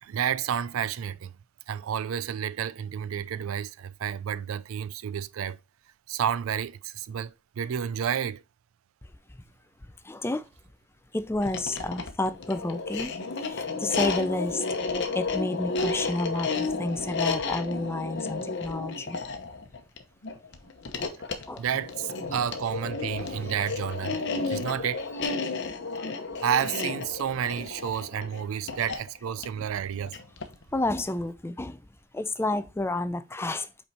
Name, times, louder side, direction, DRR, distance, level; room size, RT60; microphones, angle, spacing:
voice 1, 0.0-1.3 1.7-5.6 6.1-8.4 21.6-25.1 26.4-30.2, right 8 dB, 75° right, 0.4 m, -30 dB
voice 2, 10.0-10.5 11.1-14.7 15.1-19.2 21.5-21.6 30.7-31.8 32.1-33.7, left 2 dB, 10° left, 0.4 m, -30 dB
sound 1, 11.3-30.6, left 4 dB, 55° left, 1.0 m, -32 dB
5.5 x 4.5 x 4.2 m
head